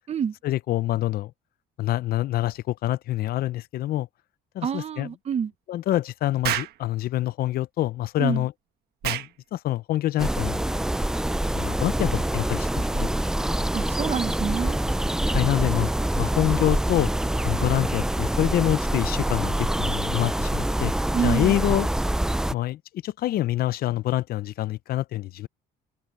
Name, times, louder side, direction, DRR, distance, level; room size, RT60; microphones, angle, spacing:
voice 1, 0.4-1.3 1.8-4.1 4.5-5.1 5.7-8.5 9.0-10.6 11.5-13.1 15.3-15.9 16.2-17.1 17.4-20.9 21.2-21.9 22.5-25.5, left 14 dB, 65° left, 0.6 m, -26 dB
voice 2, 4.6-5.5 8.2-8.5 13.7-14.8 21.1-21.6, right 7 dB, 40° right, 1.0 m, -27 dB
Explosion, 6.4-6.8 9.0-9.3, right 13 dB, 70° right, 1.4 m, -27 dB
sound 1, 10.2-22.5, right 1 dB, 5° right, 0.3 m, -25 dB
cardioid pair, 110°, 17 cm